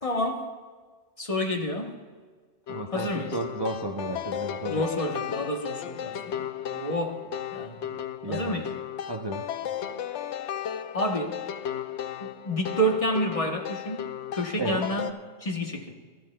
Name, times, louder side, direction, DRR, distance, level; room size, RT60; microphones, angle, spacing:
voice 1, 0.0-0.5 1.2-2.0 2.9-3.3 4.7-7.2 7.5-7.8 8.3-8.7 10.9-11.3 12.2-14.0 14.3-15.1 15.4-15.9, equal, 35° left, 2 dB, 1.0 m, -29 dB
sound 1, 2.7-15.1, left 10 dB, 80° left, 0.9 m, -35 dB
voice 2, 2.7-4.9 8.2-8.6 9.1-9.5 14.6-14.8, right 2 dB, 30° right, 2 dB, 0.5 m, -32 dB
22.0 x 12.0 x 2.2 m, 1.5 s
omnidirectional pair, 1.2 m